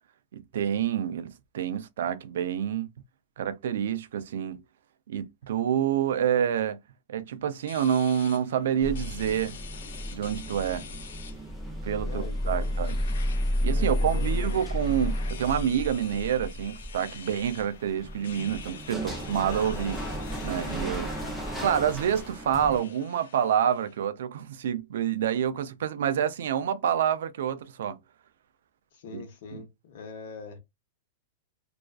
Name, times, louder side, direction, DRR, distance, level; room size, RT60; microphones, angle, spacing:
voice 1, 0.3-2.9 3.4-4.6 5.1-6.8 7.1-9.6 10.1-10.8 11.8-13.0 13.6-20.0 20.4-21.1 21.6-28.0 29.1-29.2, right 9 dB, 75° right, 0.4 m, -28 dB
sound 1, 7.6-24.1, left 7 dB, 85° left, 0.4 m, -47 dB
sound 2, 8.8-22.8, equal, ahead, 0.5 m, -32 dB
voice 2, 12.0-12.7 13.8-14.5 20.9-21.4 28.9-30.6, left 4 dB, 60° left, 0.8 m, -43 dB
2.4 x 2.3 x 2.3 m
supercardioid pair, 165°, 0 cm